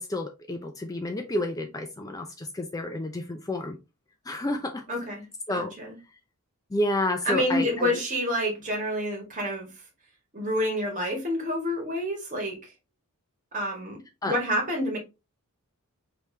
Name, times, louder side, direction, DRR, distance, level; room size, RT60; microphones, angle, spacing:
voice 1, 0.0-3.8 4.3-4.8 5.5-5.7 6.7-7.9 14.2-14.4, left 1 dB, 15° left, 0.4 m, -30 dB
voice 2, 4.9-5.2 5.5-6.0 7.3-9.7 10.3-12.6 13.5-15.0, equal, 35° right, 1.7 m, -28 dB
4.9 x 3.2 x 2.7 m
head